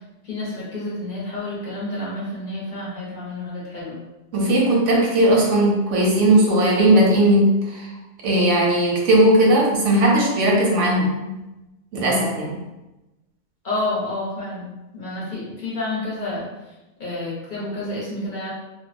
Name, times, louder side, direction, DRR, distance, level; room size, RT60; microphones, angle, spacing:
voice 1, 0.2-4.0 13.6-16.5 17.0-18.5, left 2 dB, 45° left, -7 dB, 0.8 m, -29 dB
voice 2, 4.3-7.9 8.2-11.4 11.9-12.6, right 1 dB, 90° right, -2 dB, 1.0 m, -17 dB
2.6 x 2.0 x 2.5 m, 1.0 s
omnidirectional pair, 1.2 m